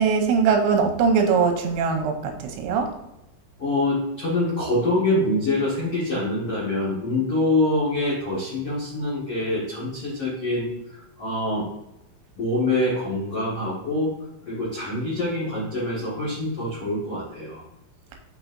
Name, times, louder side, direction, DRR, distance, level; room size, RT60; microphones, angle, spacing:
voice 1, 0.0-2.9, right 5 dB, 80° right, 3 dB, 2.8 m, -21 dB
voice 2, 3.6-11.7 12.4-14.1 14.4-17.6, left 2 dB, 85° left, -7 dB, 1.3 m, -25 dB
6.3 x 6.1 x 2.6 m, 0.90 s
omnidirectional pair, 5.7 m